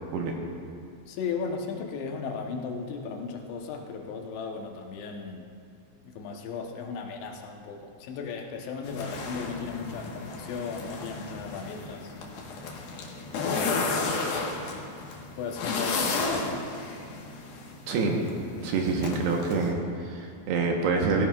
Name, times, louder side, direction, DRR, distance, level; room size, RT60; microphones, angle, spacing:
voice 1, 1.1-5.5 6.1-12.1 13.4-14.2 15.4-16.7, left 5 dB, 85° left, 2 dB, 3.3 m, -36 dB
sound 1, 8.8-19.7, left 3 dB, 65° left, 2.9 m, -33 dB
voice 2, 17.9-18.2 18.6-21.2, right 4 dB, 75° right, 0 dB, 3.0 m, -26 dB
17.0 x 16.5 x 2.4 m, 2.4 s
omnidirectional pair, 5.1 m